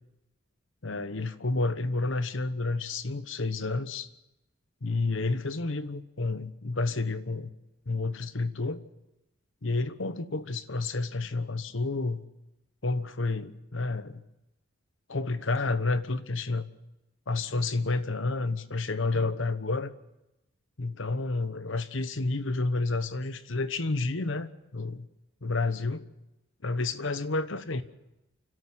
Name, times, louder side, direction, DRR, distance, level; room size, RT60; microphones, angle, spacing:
voice 1, 0.8-4.1 4.8-7.5 7.9-8.8 9.6-12.2 12.8-14.2 15.1-16.6 17.3-19.9 20.8-25.1 25.4-26.1 26.6-27.8, left 3 dB, 65° left, 1.1 m, -30 dB
29.0 x 12.5 x 7.8 m
head